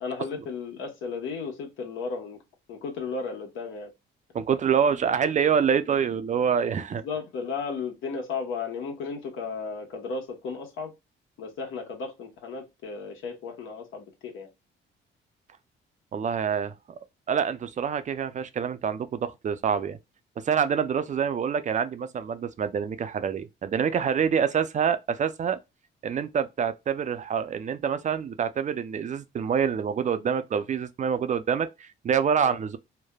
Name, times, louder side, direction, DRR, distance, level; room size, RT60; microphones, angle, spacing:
voice 1, 0.0-2.4 2.7-3.9 6.9-10.9 11.4-14.5 32.4-32.6, left 5 dB, 80° left, 1.0 m, -34 dB
voice 2, 4.3-7.0 16.1-16.7 17.3-20.0 20.4-25.6 26.0-32.8, right 7 dB, 40° right, 0.4 m, -26 dB
3.2 x 2.1 x 2.2 m
cardioid pair, 90°, 20 cm